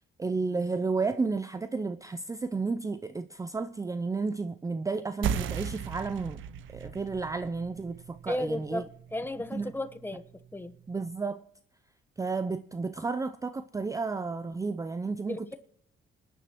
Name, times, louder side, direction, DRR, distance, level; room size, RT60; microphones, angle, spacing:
voice 1, 0.2-6.4 6.7-8.8 9.5-9.7 10.9-11.4 12.2-15.4, right 4 dB, 15° right, 0.4 m, -32 dB
sound 1, 5.2-10.3, right 8 dB, 80° right, 0.7 m, -37 dB
voice 2, 8.3-10.2 10.5-10.7 15.3-15.5, left 1 dB, 10° left, 1.0 m, -34 dB
24.5 x 10.0 x 3.0 m
cardioid pair, 90°, 20 cm